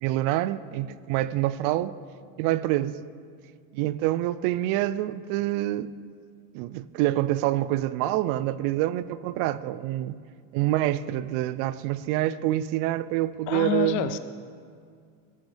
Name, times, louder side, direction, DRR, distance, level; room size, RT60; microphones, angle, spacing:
voice 1, 0.0-1.9 2.4-3.0 3.7-5.9 6.5-10.2 10.5-14.2, right 14 dB, 60° right, 0.5 m, -26 dB
voice 2, 13.5-14.2, left 11 dB, 55° left, 0.7 m, -27 dB
16.0 x 12.5 x 3.4 m
cardioid pair, 165°, 38 cm